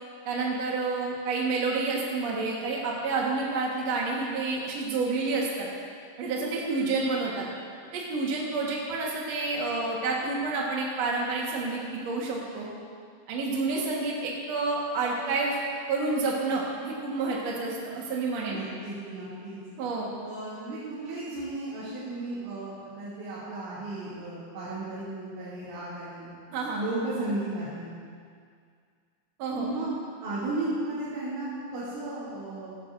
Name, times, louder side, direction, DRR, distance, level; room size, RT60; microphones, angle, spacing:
voice 1, 0.2-5.7 6.2-7.4 7.9-12.7 13.3-15.6 15.9-18.6 19.8-20.1 26.5-26.8 29.4-29.8, right 3 dB, 65° right, -3 dB, 1.7 m, -29 dB
voice 2, 18.4-19.6 20.2-26.3 26.7-28.0 29.5-29.9 30.2-32.8, right 2 dB, 85° right, -11 dB, 5.1 m, -34 dB
16.0 x 16.0 x 2.6 m, 2.1 s
omnidirectional pair, 5.3 m